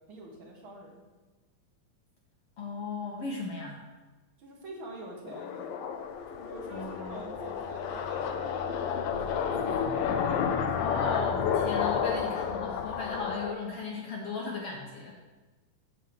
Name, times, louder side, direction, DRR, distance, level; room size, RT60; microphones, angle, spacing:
voice 1, 0.1-1.0 4.4-5.9 6.3-9.7 10.0-10.8, right 2 dB, 45° right, -1 dB, 1.9 m, -46 dB
voice 2, 2.6-3.8 6.7-7.2 10.8-15.2, left 4 dB, 60° left, -2 dB, 1.7 m, -37 dB
sound 1, 5.3-13.5, left 7 dB, 80° left, 2.3 m, -31 dB
9.3 x 5.6 x 7.8 m, 1.2 s
omnidirectional pair, 4.2 m